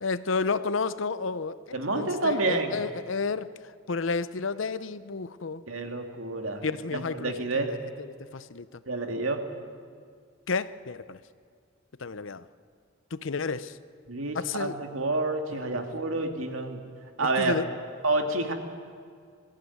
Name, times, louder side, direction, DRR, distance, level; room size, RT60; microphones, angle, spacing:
voice 1, 0.0-3.5 3.9-5.6 6.6-7.3 7.7-8.1 8.3-8.7 10.5-11.2 12.0-12.4 13.1-13.7 14.3-14.8 15.7-15.8 17.4-17.7, left 4 dB, 70° left, 15 dB, 0.7 m, -31 dB
voice 2, 1.7-2.8 5.7-6.7 6.9-7.7 8.9-9.5 14.1-16.8 17.2-17.6 18.0-18.5, right 2 dB, 85° right, 4 dB, 2.3 m, -29 dB
21.0 x 15.5 x 9.4 m, 2.1 s
head